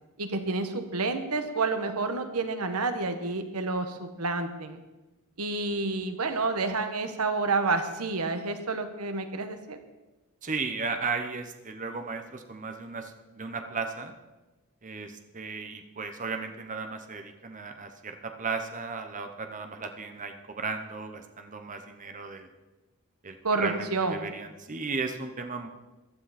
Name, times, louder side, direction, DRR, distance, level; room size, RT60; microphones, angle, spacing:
voice 1, 0.2-4.8 5.4-9.8 23.4-24.3, right 3 dB, 90° right, 8 dB, 1.3 m, -29 dB
voice 2, 10.4-14.1 14.8-22.5 23.2-25.7, right 4 dB, 35° right, 6 dB, 1.0 m, -35 dB
15.0 x 12.0 x 4.3 m, 1.1 s
head